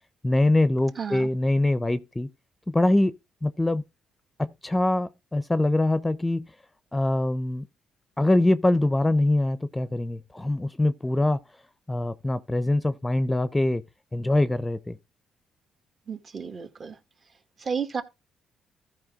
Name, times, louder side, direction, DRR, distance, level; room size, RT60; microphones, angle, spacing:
voice 1, 0.2-2.3 2.7-3.1 3.4-3.8 4.4-6.5 6.9-7.6 8.2-11.4 11.9-13.8 14.1-15.0, left 1 dB, 15° left, 0.7 m, -23 dB
voice 2, 1.0-1.3 16.1-16.9 17.6-18.0, right 6 dB, 45° right, 1.8 m, -32 dB
14.0 x 4.9 x 3.6 m
cardioid pair, 80°, 0 cm